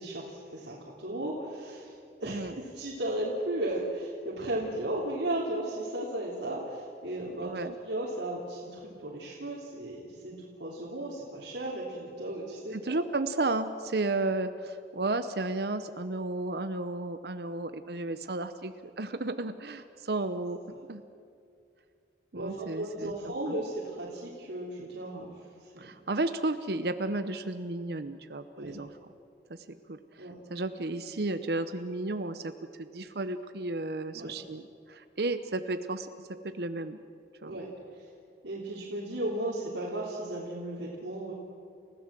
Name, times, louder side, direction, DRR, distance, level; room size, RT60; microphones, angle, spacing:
voice 1, 0.0-1.9 2.2-7.5 7.8-13.0 22.3-25.3 25.6-26.0 28.6-28.8 30.2-30.4 34.1-34.4 37.5-37.7 38.4-41.3, right 1 dB, 85° right, -5 dB, 3.4 m, -35 dB
voice 2, 7.4-7.7 12.7-20.6 20.9-21.0 22.3-23.6 25.8-28.9 29.9-32.5 32.8-37.0 37.4-37.6, right 2 dB, 65° right, 10 dB, 0.8 m, -33 dB
29.5 x 16.0 x 7.6 m, 2.5 s
head